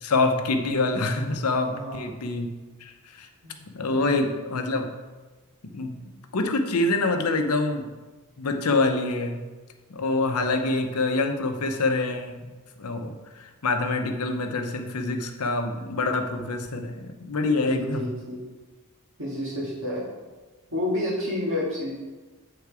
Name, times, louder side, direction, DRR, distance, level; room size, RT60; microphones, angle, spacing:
voice 1, 0.0-2.5 2.8-3.3 3.7-4.9 5.6-7.9 8.4-9.4 9.9-12.4 12.8-18.1, left 3 dB, 75° left, 5 dB, 0.7 m, -26 dB
voice 2, 1.7-2.0 3.4-3.6 3.9-4.3 17.7-18.4 19.2-20.1 20.7-21.9, left 1 dB, 60° right, -4 dB, 1.9 m, -30 dB
8.2 x 3.8 x 4.8 m, 1.3 s
head